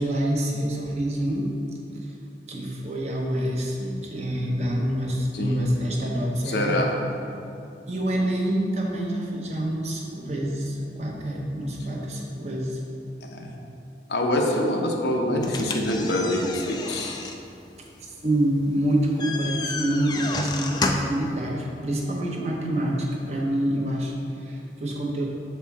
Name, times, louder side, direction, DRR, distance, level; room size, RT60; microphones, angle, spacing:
voice 1, 0.0-1.5 1.9-2.1 2.5-6.8 7.9-12.8 18.0-25.2, right 1 dB, 40° right, -2 dB, 0.8 m, -27 dB
voice 2, 5.3-5.6 6.5-6.9 13.2-13.5 14.1-17.2, left 1 dB, 70° left, 1 dB, 0.7 m, -25 dB
sound 1, 15.4-21.2, left 3 dB, 25° left, 0.3 m, -32 dB
7.0 x 4.4 x 3.5 m, 2.6 s
head